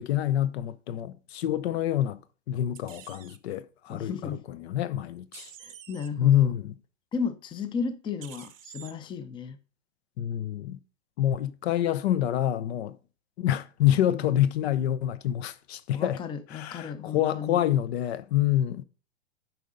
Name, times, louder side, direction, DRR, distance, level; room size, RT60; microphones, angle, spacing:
voice 1, 0.0-2.2 2.5-5.5 6.2-6.7 10.2-10.8 11.2-13.0 13.4-16.2 16.5-18.8, left 12 dB, 55° left, 0.7 m, -27 dB
sound 1, 2.8-3.4 5.3-6.1 8.2-8.9, right 10 dB, 80° right, 1.1 m, -47 dB
voice 2, 3.9-4.4 5.6-6.5 7.1-9.6 14.1-14.2 15.9-17.6, left 6 dB, 10° left, 0.6 m, -34 dB
9.2 x 5.4 x 3.8 m
hypercardioid pair, 115°, 39 cm